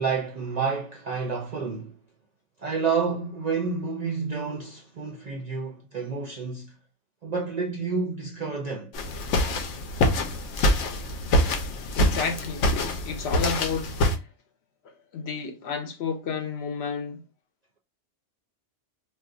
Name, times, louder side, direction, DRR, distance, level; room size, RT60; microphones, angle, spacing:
voice 1, 0.0-2.0 2.6-6.7 7.2-8.9, right 5 dB, 60° right, 0.4 m, -29 dB
sound 1, 8.9-14.2, left 1 dB, 85° left, 0.9 m, -25 dB
voice 2, 11.9-12.7 13.0-14.0 14.8-17.2, left 5 dB, 70° left, 0.8 m, -31 dB
2.4 x 2.3 x 3.6 m
omnidirectional pair, 1.2 m